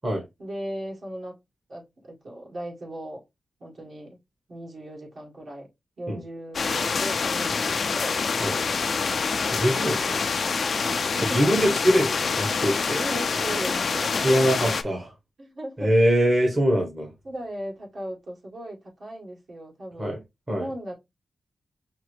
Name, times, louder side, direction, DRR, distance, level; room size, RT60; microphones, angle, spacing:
voice 1, 0.4-1.4 1.7-3.2 3.6-4.2 4.5-5.7 6.0-8.8 10.8-11.6 12.9-14.3 15.4-15.9 17.2-20.2 20.5-20.9, right 1 dB, 55° right, 2.0 m, -37 dB
sound 1, 6.5-14.8, left 5 dB, 60° left, 0.5 m, -26 dB
voice 2, 9.5-10.2 11.3-13.0 14.1-15.1 15.8-17.1 20.0-20.2 20.5-20.7, equal, 30° right, 1.2 m, -23 dB
5.8 x 2.1 x 3.2 m
cardioid pair, 80°, 0 cm